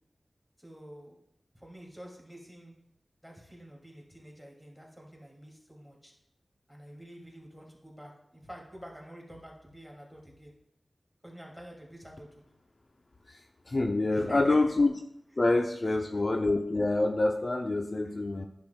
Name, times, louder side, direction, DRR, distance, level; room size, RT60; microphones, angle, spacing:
voice 1, 0.6-1.2 1.5-2.7 3.2-6.1 6.7-10.5 11.2-12.4 14.1-14.6 15.8-16.2 18.0-18.2, equal, ahead, -1 dB, 2.4 m, -48 dB
voice 2, 13.7-14.9 15.4-18.5, left 2 dB, 50° left, 3 dB, 0.5 m, -26 dB
10.5 x 6.2 x 2.3 m, 0.76 s
cardioid pair, 45°, 0 cm